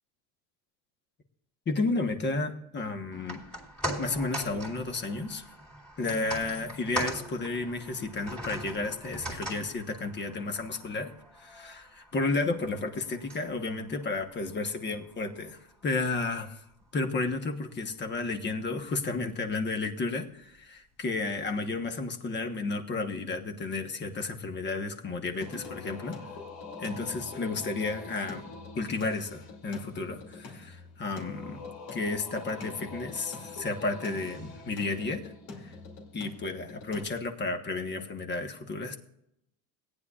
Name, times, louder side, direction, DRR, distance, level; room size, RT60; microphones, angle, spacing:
voice 1, 1.7-3.4 4.0-5.5 6.0-11.1 11.4-16.6 16.9-26.2 26.8-28.5 28.7-31.6 31.9-35.2 35.6-35.7 36.1-39.0, left 3 dB, 25° left, 5 dB, 1.2 m, -32 dB
sound 1, 3.1-15.5 15.8-15.9, equal, 5° left, 2.8 m, -41 dB
Singing, 25.4-37.0, left 3 dB, 75° left, 2.7 m, -44 dB
17.5 x 9.8 x 2.4 m, 0.80 s
cardioid pair, 140°, 40 cm